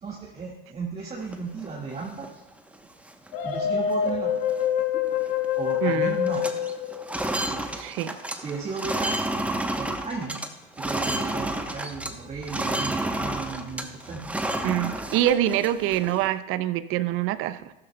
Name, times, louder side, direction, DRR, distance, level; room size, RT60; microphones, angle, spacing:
voice 1, 0.0-2.4 3.4-4.4 5.6-6.6 7.4-7.6 8.4-9.2 9.7-10.4 10.8-14.3, right 4 dB, 20° right, -2 dB, 1.8 m, -35 dB
sound 1, 1.2-2.3 2.7-2.8 3.1-3.5 3.9-4.1 4.4-5.5 5.7-6.0 6.2-12.1 12.4-16.3, right 1 dB, 5° right, 0.9 m, -31 dB
sound 2, 3.3-7.5, left 9 dB, 65° left, 1.4 m, -26 dB
voice 2, 5.8-6.2 7.8-8.1 14.6-17.7, right 12 dB, 45° right, 14 dB, 0.6 m, -25 dB
14.5 x 12.5 x 2.2 m, 1.0 s
hypercardioid pair, 95°, 29 cm